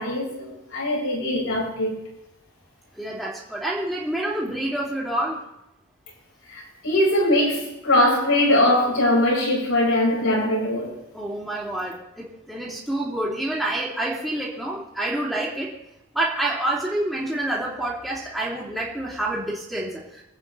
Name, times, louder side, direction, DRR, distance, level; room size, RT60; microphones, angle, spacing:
voice 1, 0.0-2.0 6.5-10.9, left 1 dB, 85° left, 5.1 m, -21 dB
voice 2, 2.9-5.4 11.1-15.7 16.1-20.2, right 1 dB, ahead, 2.5 m, -28 dB
26.0 x 8.7 x 3.3 m
head